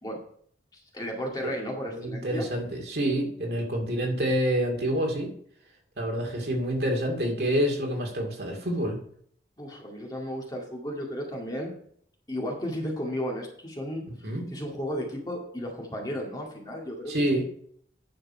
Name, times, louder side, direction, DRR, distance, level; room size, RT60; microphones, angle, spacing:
voice 1, 0.9-2.5 9.6-11.7 12.3-14.0 14.5-17.5, equal, 20° left, -1 dB, 2.1 m, -34 dB
voice 2, 1.9-5.3 6.0-9.0 14.2-14.4 17.1-17.4, equal, 60° right, 1 dB, 2.3 m, -27 dB
10.0 x 5.9 x 5.6 m, 0.62 s
head